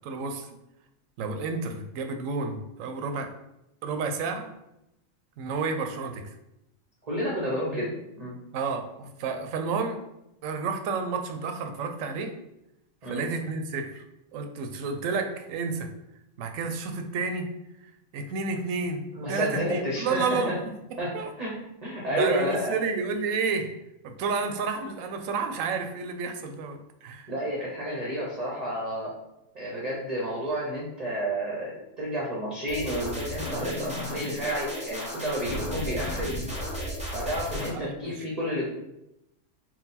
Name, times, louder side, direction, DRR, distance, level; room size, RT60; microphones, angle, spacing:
voice 1, 0.0-0.5 1.2-3.3 3.8-4.5 5.4-6.2 7.7-7.9 8.5-10.0 10.4-12.3 13.0-14.0 14.3-15.9 16.4-17.5 18.1-20.7 21.1-21.3 22.1-23.7 24.0-27.3 37.7-38.3, right 4 dB, 80° right, 6 dB, 1.0 m, -31 dB
voice 2, 7.1-7.9 8.2-8.4 13.0-13.2 19.1-20.5 21.0-21.1 21.4-21.5 21.8-22.8 27.3-29.1 29.5-36.4 37.1-38.7, equal, 40° right, -4 dB, 0.7 m, -30 dB
sound 1, 32.7-37.7, equal, 5° right, 0.7 m, -34 dB
4.0 x 2.3 x 4.0 m, 0.88 s
omnidirectional pair, 1.4 m